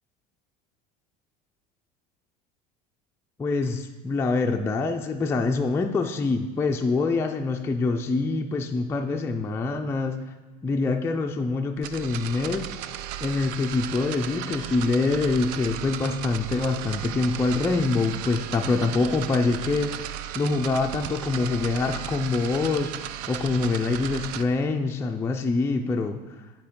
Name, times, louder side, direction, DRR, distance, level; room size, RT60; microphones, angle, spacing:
voice 1, 3.4-10.2 10.6-12.7 13.2-19.9 20.3-22.9 23.3-26.2, left 3 dB, 10° left, 3 dB, 0.4 m, -25 dB
sound 1, 11.8-24.4, right 11 dB, 75° right, 0.4 m, -35 dB
10.0 x 4.5 x 3.7 m, 1.2 s
supercardioid pair, 130°, 21 cm